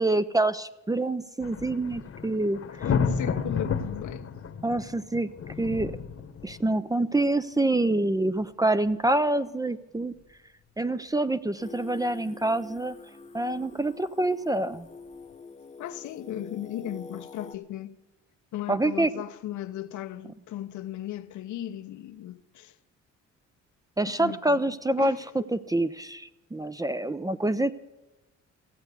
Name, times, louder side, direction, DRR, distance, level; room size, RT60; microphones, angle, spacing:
voice 1, 0.0-2.6 4.6-5.3 5.6-5.9 6.4-10.1 10.8-13.0 13.3-14.9 18.7-19.1 24.0-27.8, right 2 dB, 10° right, 0.4 m, -26 dB
sound 1, 1.4-6.8 7.0-7.1 7.7-7.8 14.7-14.8, left 6 dB, 50° left, 1.1 m, -32 dB
voice 2, 2.9-4.2 15.8-18.0 18.5-22.8 24.0-25.3, left 12 dB, 75° left, 0.8 m, -36 dB
Singing, 11.6-17.6, left 4 dB, 20° left, 0.8 m, -46 dB
15.5 x 7.8 x 8.3 m
cardioid pair, 90°, 30 cm